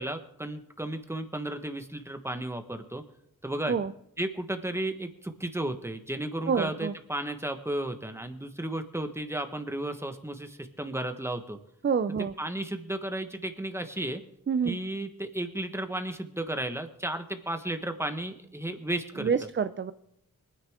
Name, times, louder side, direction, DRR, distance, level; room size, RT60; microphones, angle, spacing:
voice 1, 0.0-3.0 3.4-3.7 4.2-11.6 12.4-14.2 14.6-19.3, right 1 dB, 5° right, 7 dB, 1.3 m, -34 dB
voice 2, 6.5-6.9 11.8-12.3 14.5-14.8 19.2-19.9, right 6 dB, 35° right, 12 dB, 0.4 m, -27 dB
24.5 x 9.9 x 3.7 m, 0.81 s
wide cardioid pair, 80°, 34 cm